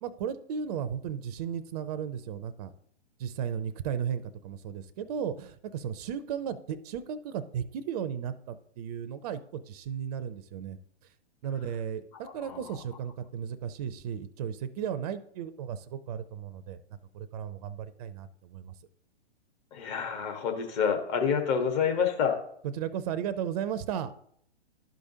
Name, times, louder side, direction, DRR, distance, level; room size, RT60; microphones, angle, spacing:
voice 1, 0.0-2.7 3.2-10.8 11.4-16.8 17.1-18.7 22.7-24.1, right 8 dB, 35° right, 11 dB, 0.5 m, -35 dB
voice 2, 12.2-12.7 19.7-22.4, left 7 dB, 35° left, 4 dB, 1.3 m, -28 dB
11.5 x 5.0 x 2.7 m, 0.65 s
hypercardioid pair, 130°, 34 cm